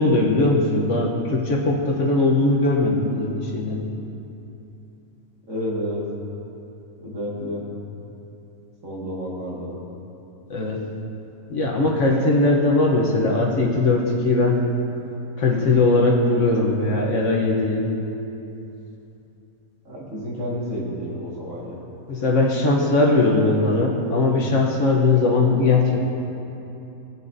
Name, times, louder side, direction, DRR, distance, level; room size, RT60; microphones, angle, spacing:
voice 1, 0.0-3.9 10.5-10.8 11.5-14.6 15.4-17.8 22.1-26.0, left 2 dB, 55° left, -1 dB, 1.2 m, -20 dB
voice 2, 5.5-6.1 7.0-7.7 8.8-9.7 19.9-21.8, equal, 60° right, -6 dB, 2.3 m, -30 dB
18.0 x 6.8 x 2.7 m, 2.9 s
omnidirectional pair, 1.6 m